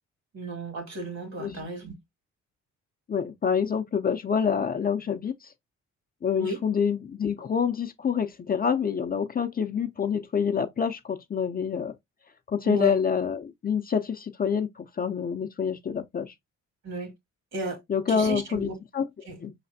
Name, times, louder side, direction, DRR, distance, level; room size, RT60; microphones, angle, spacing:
voice 1, 0.3-1.9 6.4-6.6 12.6-12.9 16.8-17.1 17.5-17.8 18.1-18.7 19.3-19.4, right 2 dB, 60° right, 2.0 m, -33 dB
voice 2, 3.1-5.5 6.2-11.9 12.5-16.3 17.9-19.1 19.4-19.5, left 7 dB, 30° left, 0.5 m, -27 dB
4.9 x 3.2 x 2.6 m
cardioid pair, 90°, 30 cm